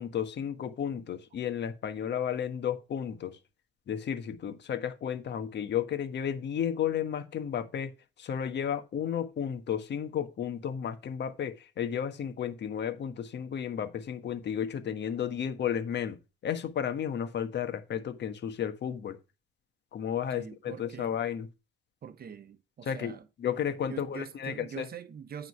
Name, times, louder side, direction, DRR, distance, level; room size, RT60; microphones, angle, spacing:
voice 1, 0.0-3.4 3.9-19.2 19.9-21.5 22.8-24.9, left 8 dB, 60° left, 1.4 m, -33 dB
voice 2, 20.3-21.2 22.0-23.2 23.9-25.5, right 7 dB, 50° right, 1.0 m, -43 dB
9.5 x 3.9 x 6.0 m
cardioid pair, 90°, 20 cm